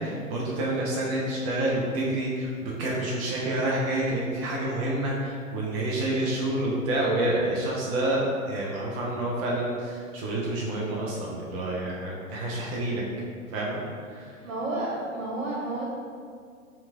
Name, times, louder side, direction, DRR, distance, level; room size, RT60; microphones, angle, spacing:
voice 1, 0.0-13.0 13.5-14.5, right 1 dB, 25° right, -4 dB, 0.4 m, -28 dB
voice 2, 14.4-15.8, right 2 dB, 65° right, -4 dB, 1.3 m, -31 dB
3.4 x 3.0 x 3.4 m, 2.2 s
figure-of-eight pair, 110°, 41 cm